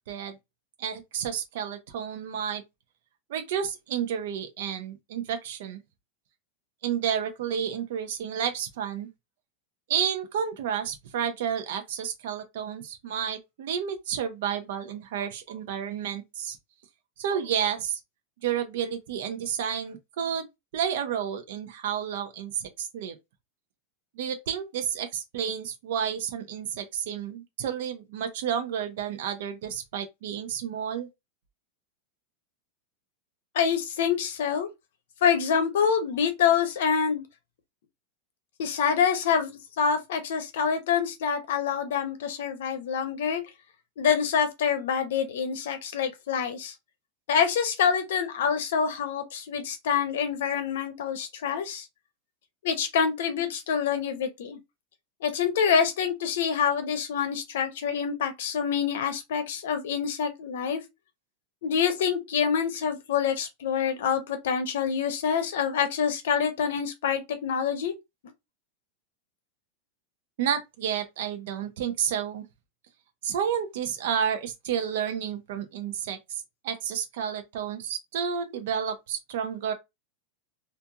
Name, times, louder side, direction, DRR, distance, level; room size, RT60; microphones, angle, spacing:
voice 1, 0.8-2.6 3.3-5.8 6.8-9.1 9.9-16.6 17.2-18.0 18.4-20.5 20.7-23.2 24.2-31.1 70.4-72.4 73.2-76.2 76.6-79.7, right 8 dB, 65° right, 0.6 m, -31 dB
voice 2, 33.5-34.7 35.2-37.2 38.6-43.4 44.0-46.7 47.3-51.9 52.6-54.6 55.2-60.8 61.6-67.9, left 7 dB, 80° left, 0.7 m, -26 dB
2.7 x 2.4 x 2.3 m
supercardioid pair, 170°, 0 cm